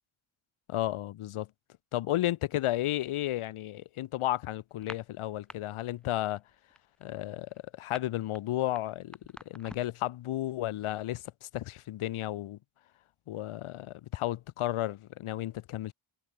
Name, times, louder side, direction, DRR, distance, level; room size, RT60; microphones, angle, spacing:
voice 1, 0.7-1.5 1.9-6.4 7.0-9.2 9.5-12.6 13.3-15.9, left 14 dB, 85° left, 0.6 m, -33 dB
sound 1, 4.7-5.6 5.9-6.2 6.5-10.0, equal, ahead, 3.7 m, -48 dB
cardioid pair, 65°, 49 cm